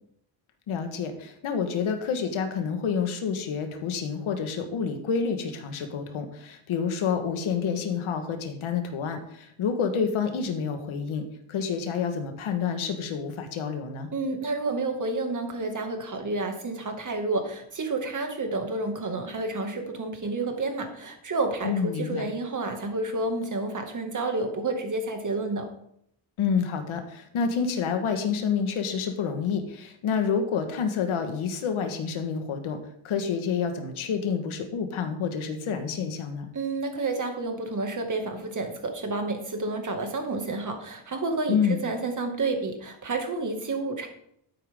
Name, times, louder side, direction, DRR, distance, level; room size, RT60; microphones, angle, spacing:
voice 1, 0.7-14.1 21.6-22.3 26.4-32.8 33.0-36.5 41.5-41.8, left 6 dB, 90° left, 7 dB, 1.7 m, -28 dB
voice 2, 14.1-25.7 36.5-44.1, right 3 dB, 40° right, 4 dB, 2.3 m, -30 dB
13.0 x 9.2 x 3.8 m, 0.71 s
cardioid pair, 100°, 48 cm